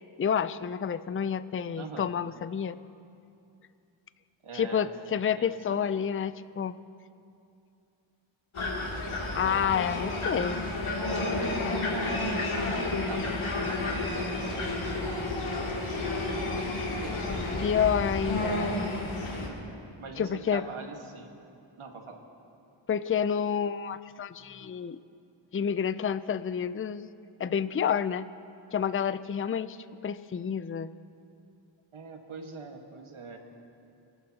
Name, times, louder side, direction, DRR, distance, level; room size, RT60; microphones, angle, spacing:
voice 1, 0.2-2.8 4.5-6.8 9.3-10.6 17.6-18.8 20.2-20.6 22.9-25.0 25.5-27.1 27.4-28.3 28.7-29.8 30.0-30.9, left 7 dB, 30° left, 14 dB, 0.5 m, -29 dB
voice 2, 1.8-2.1 4.4-4.9 5.3-5.9 9.1-10.7 11.5-18.1 19.3-19.6 20.0-21.3 21.8-22.2 31.9-33.4, right 4 dB, 85° right, 3 dB, 1.6 m, -44 dB
sound 1, 8.5-19.5, left 2 dB, 85° left, 2.8 m, -31 dB
26.0 x 12.0 x 2.9 m, 2.6 s
cardioid pair, 45°, 48 cm